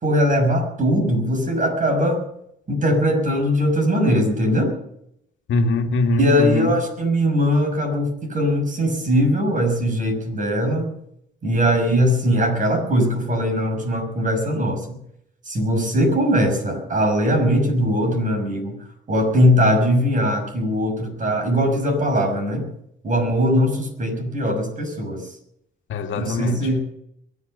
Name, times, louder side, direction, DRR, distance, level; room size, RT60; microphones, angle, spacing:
voice 1, 0.0-2.2 2.7-4.7 6.2-10.9 11.4-14.8 15.5-18.8 19.1-22.7 23.0-25.3 26.2-26.8, equal, 40° right, 6.3 m, -20 dB
voice 2, 5.5-6.7 25.9-26.8, left 2 dB, 75° left, 2.0 m, -22 dB
23.0 x 8.4 x 6.7 m
cardioid pair, 90°, 20 cm